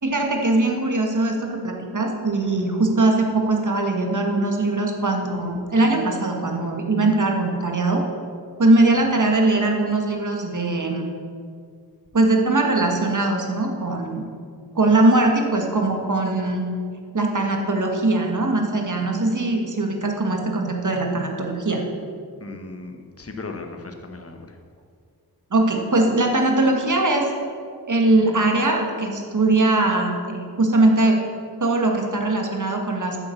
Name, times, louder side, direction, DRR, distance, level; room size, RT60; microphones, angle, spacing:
voice 1, 0.0-8.0 8.6-11.1 12.1-14.3 14.7-16.6 17.1-21.8 25.5-27.3 27.9-31.2 31.6-33.2, right 2 dB, 50° right, 1 dB, 1.6 m, -21 dB
voice 2, 22.4-24.6, left 3 dB, 35° left, 5 dB, 1.0 m, -37 dB
8.9 x 7.0 x 7.1 m, 2.2 s
wide cardioid pair, 85°, 40 cm